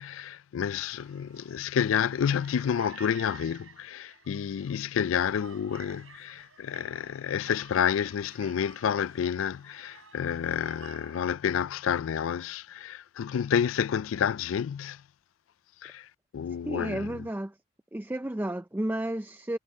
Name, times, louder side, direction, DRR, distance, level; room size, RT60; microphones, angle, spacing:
voice 1, 0.0-15.0 15.8-16.1 16.3-17.2, left 8 dB, 75° left, 0.3 m, -29 dB
sound 1, 0.7-11.3, right 6 dB, 80° right, 7.8 m, -53 dB
voice 2, 16.6-17.5 17.9-19.6, right 1 dB, 10° right, 0.4 m, -32 dB
head